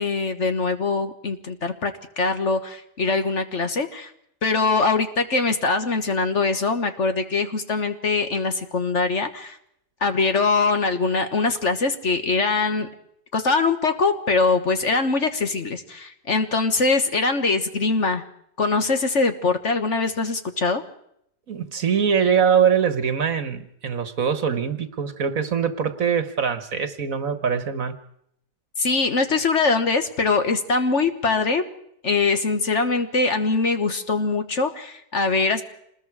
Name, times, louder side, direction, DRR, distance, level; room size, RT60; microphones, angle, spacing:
voice 1, 0.0-4.1 4.4-9.6 10.0-12.9 13.3-18.2 18.6-20.8 28.8-31.6 32.0-35.6, left 3 dB, 50° left, 8 dB, 1.6 m, -22 dB
voice 2, 21.5-28.0, right 7 dB, 55° right, 11 dB, 1.7 m, -23 dB
27.0 x 20.5 x 4.8 m, 0.73 s
omnidirectional pair, 1.7 m